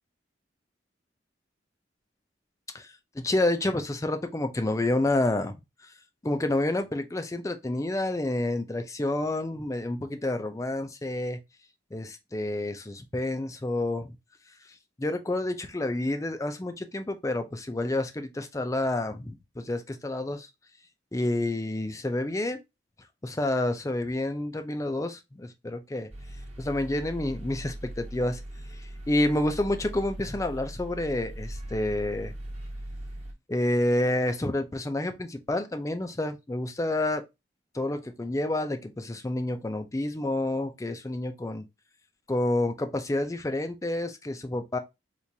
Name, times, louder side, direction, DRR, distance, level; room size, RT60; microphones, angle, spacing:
voice 1, 2.7-5.5 6.2-11.4 11.9-14.1 15.0-20.5 21.1-22.6 23.2-26.1 26.6-28.4 28.8-32.3 33.5-37.2 37.7-41.6 42.3-44.8, left 1 dB, 15° left, 0.4 m, -29 dB
sound 1, 26.1-33.3, right 1 dB, 35° right, 1.0 m, -40 dB
4.5 x 2.5 x 2.7 m
head